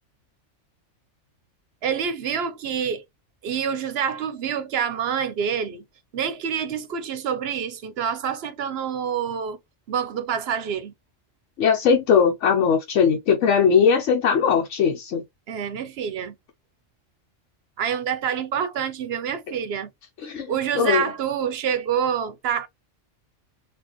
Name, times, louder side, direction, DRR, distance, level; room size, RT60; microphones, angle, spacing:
voice 1, 1.8-3.0 3.4-5.8 6.1-9.6 9.9-10.9 15.5-16.3 17.8-19.9 20.5-22.7, right 8 dB, 65° right, 0.8 m, -27 dB
voice 2, 11.6-15.2 20.2-20.5 20.7-21.0, left 6 dB, 80° left, 1.1 m, -19 dB
4.3 x 2.5 x 2.9 m
omnidirectional pair, 1.2 m